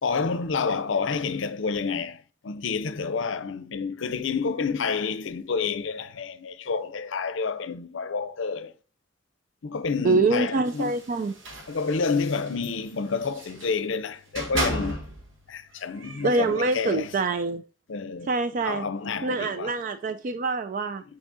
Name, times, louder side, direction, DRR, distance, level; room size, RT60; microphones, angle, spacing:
voice 1, 0.0-8.7 9.6-10.9 11.7-15.0 15.5-17.1 17.9-18.3 18.6-19.8, left 5 dB, 75° left, 0.6 m, -29 dB
voice 2, 10.0-11.3 16.2-17.6 18.3-18.9 19.2-21.0, right 3 dB, 45° right, 0.4 m, -25 dB
sound 1, 10.7-13.8 14.3-15.3 15.7-17.1, right 1 dB, 75° right, 1.7 m, -35 dB
6.1 x 6.0 x 2.6 m
head